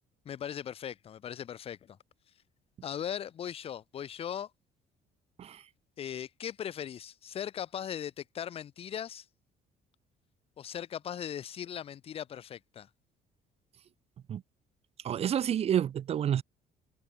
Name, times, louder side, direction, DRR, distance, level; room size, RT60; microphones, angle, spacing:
voice 1, 0.3-2.0 2.8-4.5 6.0-9.3 10.6-12.9, left 9 dB, 35° left, 0.4 m, -39 dB
voice 2, 15.0-16.4, right 9 dB, 40° right, 0.4 m, -29 dB
cardioid pair, 110°, 17 cm